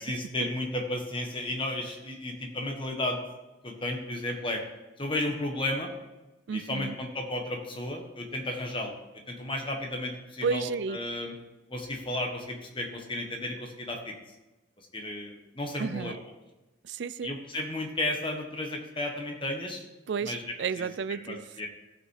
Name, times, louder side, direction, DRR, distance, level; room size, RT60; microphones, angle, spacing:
voice 1, 0.0-3.2 3.6-4.6 5.0-5.9 6.5-9.0 9.3-11.3 11.7-14.1 14.9-16.2 17.2-19.8 20.2-20.4 20.8-20.9 21.3-21.7, left 1 dB, 25° left, 1.5 m, -33 dB
voice 2, 6.5-7.0 10.4-11.0 15.8-16.2 16.8-17.4 20.1-21.4, right 5 dB, 65° right, 0.4 m, -32 dB
16.5 x 5.8 x 4.8 m
head